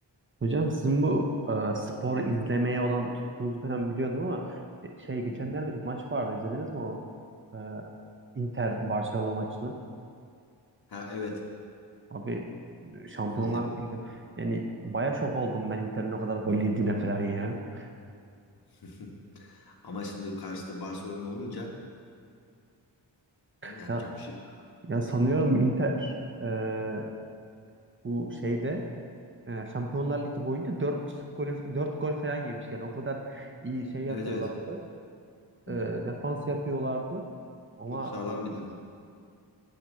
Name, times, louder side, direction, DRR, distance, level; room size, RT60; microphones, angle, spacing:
voice 1, 0.4-7.0 7.5-7.9 8.3-9.7 12.1-12.5 12.8-17.9 23.6-24.1 24.8-26.1 26.4-27.1 28.0-28.8 29.5-31.0 31.4-34.8 35.7-37.2 37.8-38.1, right 2 dB, 30° right, 2 dB, 0.7 m, -30 dB
voice 2, 10.9-11.4 13.3-13.8 18.8-21.7 23.6-24.3 34.1-34.5 35.7-35.9 37.9-38.7, left 3 dB, 55° left, -1 dB, 1.5 m, -38 dB
9.1 x 5.0 x 7.4 m, 2.3 s
wide cardioid pair, 130°, 43 cm